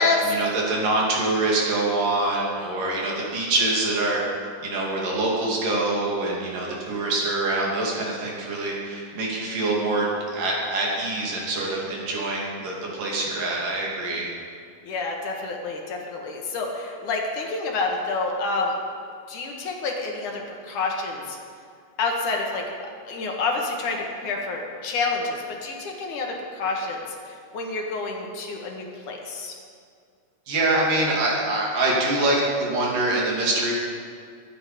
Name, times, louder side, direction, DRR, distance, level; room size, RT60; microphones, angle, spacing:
voice 1, 0.0-4.2 4.6-14.3 30.5-33.7, right 2 dB, 75° right, -3 dB, 4.5 m, -25 dB
voice 2, 14.8-18.7 19.3-21.4 22.0-22.6 23.0-29.5, left 3 dB, 65° left, 0 dB, 3.1 m, -28 dB
22.5 x 10.5 x 5.2 m, 2.2 s
omnidirectional pair, 3.8 m